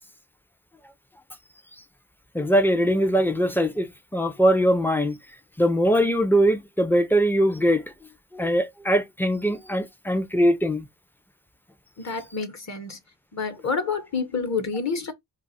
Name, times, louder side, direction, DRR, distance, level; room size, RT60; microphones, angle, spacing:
voice 1, 2.3-5.2 5.6-7.8 8.3-10.8, equal, 5° left, 0.4 m, -21 dB
voice 2, 12.0-13.0 13.3-15.1, left 5 dB, 40° left, 0.9 m, -28 dB
2.4 x 2.4 x 4.0 m
wide cardioid pair, 110°, 41 cm